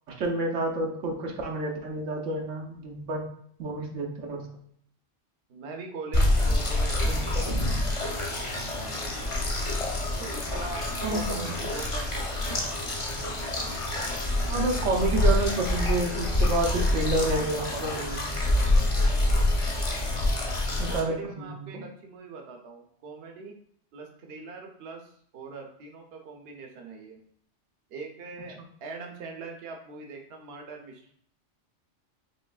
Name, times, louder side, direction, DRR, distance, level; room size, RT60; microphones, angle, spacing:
voice 1, 0.1-3.2 3.6-4.5 7.0-7.2 11.0-11.4 14.5-18.3 20.8-21.7, right 2 dB, 90° right, 1 dB, 1.1 m, -29 dB
voice 2, 5.5-9.5 10.2-12.6 20.1-20.4 20.9-23.6 23.9-27.2 27.9-31.1, right 4 dB, 60° right, 2 dB, 0.9 m, -42 dB
sound 1, 6.1-21.0, left 1 dB, 35° left, 0.7 m, -26 dB
5.3 x 3.1 x 2.3 m, 0.64 s
omnidirectional pair, 1.2 m